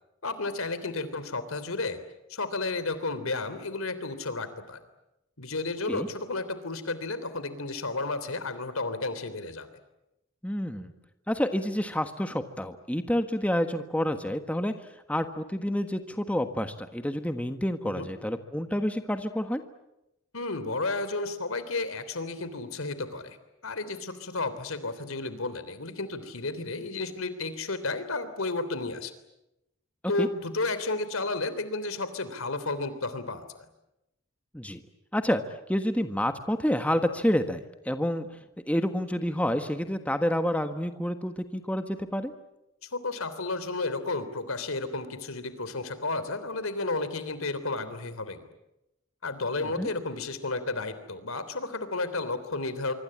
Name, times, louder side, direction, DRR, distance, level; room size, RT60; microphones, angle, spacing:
voice 1, 0.2-2.0 2.3-4.8 5.4-9.7 17.8-18.1 20.3-23.4 23.6-29.1 30.1-33.6 42.8-48.4 49.2-52.9, left 3 dB, 85° left, 12 dB, 3.3 m, -32 dB
voice 2, 10.4-10.9 11.3-14.7 15.1-19.6 30.2-30.3 34.5-34.8 35.1-35.4 35.7-38.3 38.7-42.3 49.6-49.9, equal, 5° left, 8 dB, 1.4 m, -28 dB
25.5 x 24.5 x 8.7 m, 0.91 s
head